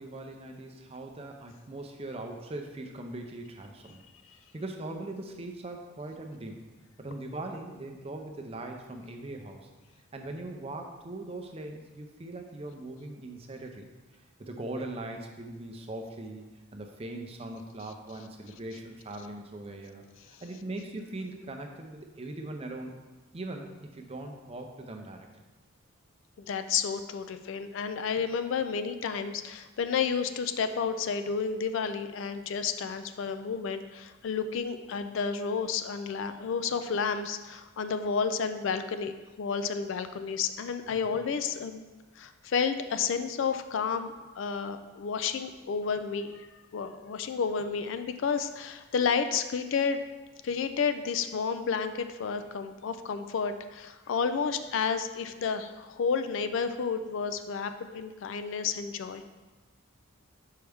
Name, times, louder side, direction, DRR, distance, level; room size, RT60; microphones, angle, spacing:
voice 1, 0.0-4.0 4.5-6.6 7.0-9.7 10.1-13.9 14.4-22.9 23.3-25.3 41.0-41.2, right 2 dB, 30° right, 3 dB, 0.5 m, -40 dB
voice 2, 26.4-41.8 42.2-46.4 46.7-50.0 50.4-59.3, left 6 dB, 65° left, 10 dB, 0.4 m, -31 dB
6.4 x 4.6 x 3.4 m, 1.2 s
head